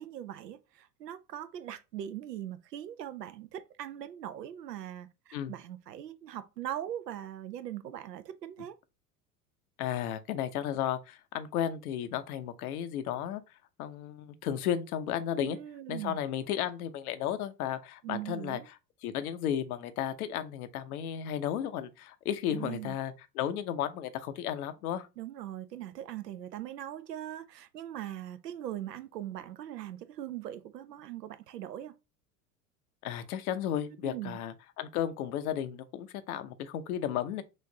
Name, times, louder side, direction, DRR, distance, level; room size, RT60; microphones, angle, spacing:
voice 1, 0.0-8.8 15.4-16.2 18.0-18.7 22.5-22.9 25.2-31.9 34.0-34.4, right 12 dB, 80° right, 0.6 m, -41 dB
voice 2, 9.8-13.4 13.8-15.6 15.9-18.6 19.0-25.1 33.0-37.4, left 10 dB, 65° left, 0.8 m, -34 dB
6.2 x 2.5 x 2.8 m
figure-of-eight pair, 75°, 48 cm